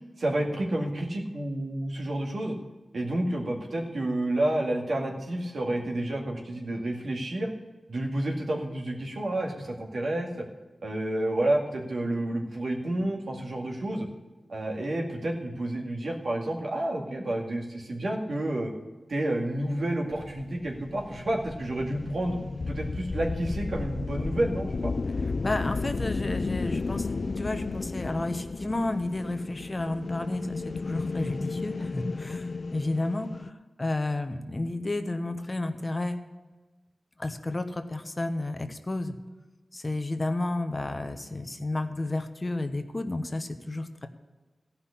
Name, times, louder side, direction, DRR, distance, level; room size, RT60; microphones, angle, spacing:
voice 1, 0.2-2.6 2.9-7.5 7.9-10.4 10.8-14.1 14.5-18.7 19.1-22.4 22.7-24.9, right 1 dB, 70° right, -1 dB, 2.2 m, -30 dB
sound 1, 20.1-33.5, left 3 dB, 50° left, 0.4 m, -33 dB
voice 2, 25.4-36.2 37.2-39.1 39.7-44.1, left 2 dB, 30° left, 8 dB, 0.9 m, -32 dB
15.0 x 5.7 x 8.4 m, 1.2 s
wide cardioid pair, 90°, 0 cm